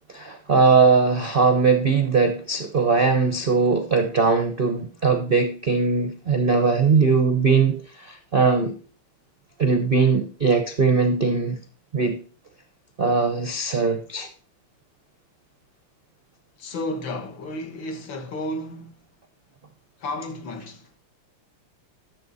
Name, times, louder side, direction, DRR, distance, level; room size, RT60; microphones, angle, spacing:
voice 1, 0.1-8.8 9.6-11.6 11.9-12.2 13.0-14.3, right 4 dB, 60° right, 0.5 m, -20 dB
voice 2, 16.6-19.0 20.0-20.9, left 1 dB, 65° left, 2.0 m, -32 dB
12.0 x 7.2 x 4.1 m
omnidirectional pair, 2.4 m